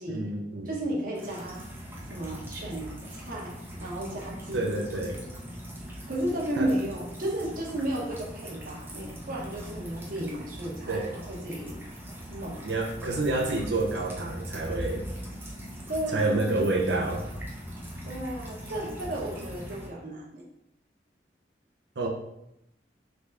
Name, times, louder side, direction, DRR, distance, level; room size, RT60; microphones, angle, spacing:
voice 1, 0.1-0.7 4.5-5.2 6.6-6.7 10.9-11.2 12.6-15.1 16.1-17.3 22.0-22.1, right 2 dB, 75° right, 1 dB, 0.9 m, -28 dB
voice 2, 0.6-1.6 2.1-3.5 3.8-4.6 6.1-11.8 12.3-12.6 15.9-16.6 18.0-20.4, right 1 dB, 50° right, -3 dB, 1.2 m, -33 dB
sound 1, 1.1-19.9, equal, 15° right, 0.7 m, -41 dB
3.9 x 3.5 x 3.5 m, 0.83 s
head